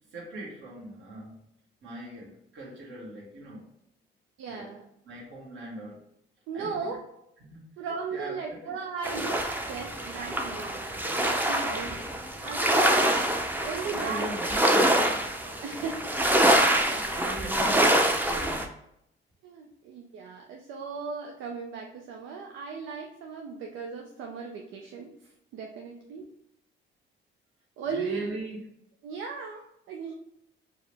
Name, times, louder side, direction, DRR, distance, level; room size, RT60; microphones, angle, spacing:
voice 1, 0.1-1.4 1.8-3.7 4.5-4.7 5.0-6.0 6.5-6.9 7.4-7.6 8.1-8.7 13.9-15.3 16.5-18.6 27.8-28.6, right 1 dB, 75° right, -3 dB, 1.4 m, -40 dB
voice 2, 4.4-4.8 6.5-7.0 7.8-12.0 12.4-12.9 13.6-14.3 15.6-16.0 19.4-26.3 27.8-28.3 29.0-30.1, right 5 dB, 90° right, 1 dB, 0.5 m, -37 dB
sound 1, 9.0-18.7, right 1 dB, 10° right, 0.5 m, -25 dB
4.6 x 2.0 x 3.3 m, 0.77 s
cardioid pair, 90°, 20 cm